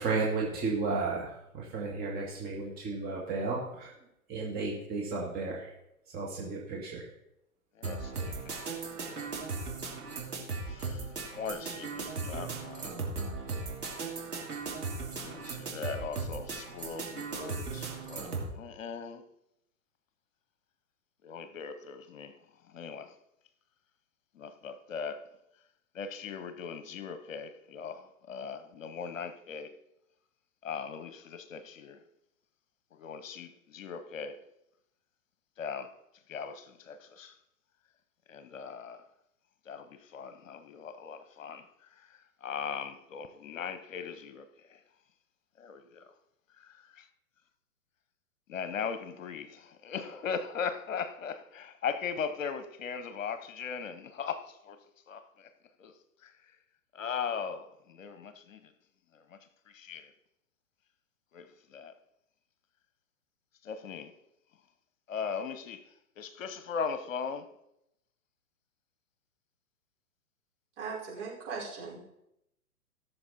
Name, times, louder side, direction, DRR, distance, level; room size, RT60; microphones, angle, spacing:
voice 1, 0.0-3.9 4.3-5.7 6.1-7.1, right 3 dB, 20° right, 1.9 m, -33 dB
voice 2, 7.7-9.3 10.7-13.0 15.1-19.2 21.2-22.4 22.7-23.2 24.3-25.3 25.9-29.8 30.6-32.0 32.9-34.4 35.6-35.9 36.3-37.4 38.3-39.0 39.6-44.8 45.6-46.1 48.5-55.5 55.8-56.3 56.9-58.7 59.1-60.1 61.3-61.9 63.6-64.1 65.1-65.8 66.2-67.5, left 6 dB, 55° left, 1.0 m, -39 dB
sound 1, 7.8-18.5, right 4 dB, 80° right, 2.9 m, -37 dB
voice 3, 70.8-72.0, right 5 dB, 50° right, 5.2 m, -39 dB
17.0 x 6.9 x 4.3 m
figure-of-eight pair, 115°, 46 cm